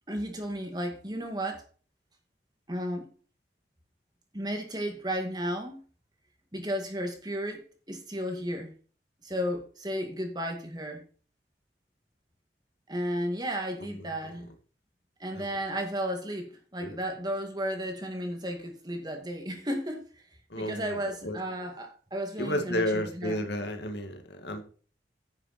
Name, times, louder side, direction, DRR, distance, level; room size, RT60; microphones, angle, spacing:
voice 1, 0.1-1.6 2.7-3.1 4.3-5.8 6.5-8.7 9.2-11.0 12.9-14.5 15.2-20.1 20.6-23.4, equal, 25° right, 2.1 m, -33 dB
voice 2, 20.5-21.4 22.4-24.6, left 1 dB, 80° left, 1.9 m, -32 dB
10.0 x 6.8 x 4.3 m
head